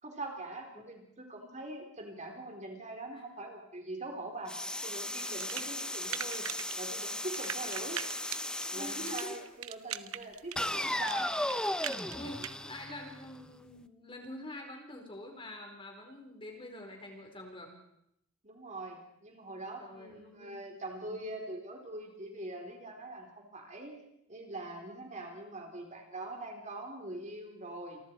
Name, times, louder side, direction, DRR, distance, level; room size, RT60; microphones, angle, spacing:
voice 1, 0.0-4.5 4.8-6.5 6.8-8.0 8.7-11.3 18.4-24.0 24.3-28.0, right 2 dB, 35° right, 2 dB, 4.3 m, -43 dB
sound 1, 4.5-9.4 10.6-13.5, left 1 dB, 5° left, 0.8 m, -36 dB
sound 2, 5.3-6.7 7.0-12.5, right 10 dB, 80° right, 0.9 m, -40 dB
voice 2, 5.4-5.7 6.0-6.1 8.7-9.3 12.1-17.7 19.8-20.6 21.1-21.2, left 1 dB, 25° left, 2 dB, 4.7 m, -46 dB
28.5 x 24.0 x 4.8 m, 0.79 s
head